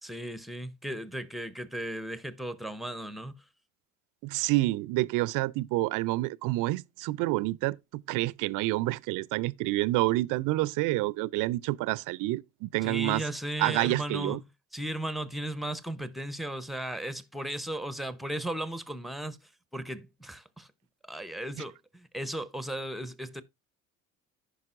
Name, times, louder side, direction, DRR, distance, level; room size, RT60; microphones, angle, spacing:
voice 1, 0.0-3.4 12.8-14.4 14.7-20.7 21.0-23.4, right 1 dB, ahead, 0.7 m, -36 dB
voice 2, 4.2-13.2 13.6-14.4, right 19 dB, 55° right, 0.5 m, -28 dB
14.5 x 5.3 x 2.5 m
hypercardioid pair, 65°, 39 cm